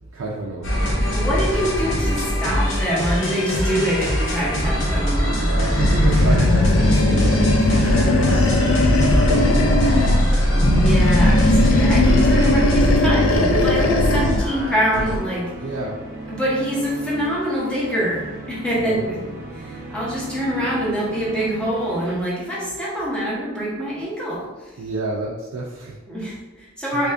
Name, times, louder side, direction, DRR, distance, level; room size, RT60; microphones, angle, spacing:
voice 1, 0.0-1.2 5.4-8.5 9.0-10.1 15.5-16.0 18.8-19.0 24.8-26.0 26.9-27.1, right 2 dB, 80° right, -3 dB, 0.4 m, -30 dB
sound 1, 0.6-15.2, equal, 65° left, 0.8 m, -22 dB
voice 2, 1.1-5.7 10.5-15.5 16.3-19.2 19.5-24.8 26.1-27.1, equal, 5° left, -7 dB, 0.8 m, -25 dB
sound 2, 5.2-22.2, right 1 dB, 40° right, 0.8 m, -36 dB
Animal, 5.8-10.3 10.6-14.5, left 2 dB, 90° left, 0.4 m, -18 dB
3.4 x 2.5 x 3.3 m, 1.2 s
head